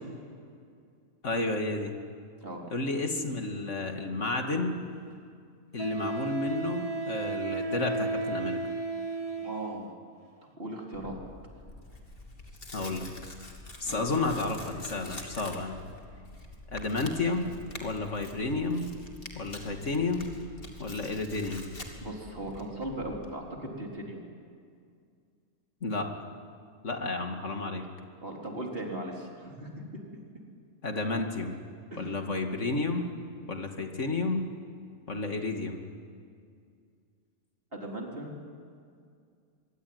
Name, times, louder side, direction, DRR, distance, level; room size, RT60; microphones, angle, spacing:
voice 1, 1.2-1.9 2.7-4.8 5.7-8.6 12.7-13.1 13.8-15.8 16.7-17.5 17.8-18.9 19.3-20.3 20.8-21.7 25.8-26.1 26.8-27.9 30.8-31.6 32.0-33.1 33.5-34.5 35.1-35.8, left 3 dB, 65° left, 4 dB, 2.7 m, -31 dB
Wind instrument woodwind instrument, 5.8-9.9, right 3 dB, 30° right, 1.4 m, -33 dB
voice 2, 9.4-9.9 10.6-11.2 13.8-14.0 22.0-24.2 28.2-29.7 31.9-32.2 37.7-38.3, right 1 dB, 45° right, 0 dB, 4.2 m, -38 dB
Tearing, 10.9-23.3, left 2 dB, 45° left, 3.1 m, -46 dB
25.0 x 23.5 x 9.7 m, 2.3 s
omnidirectional pair, 1.3 m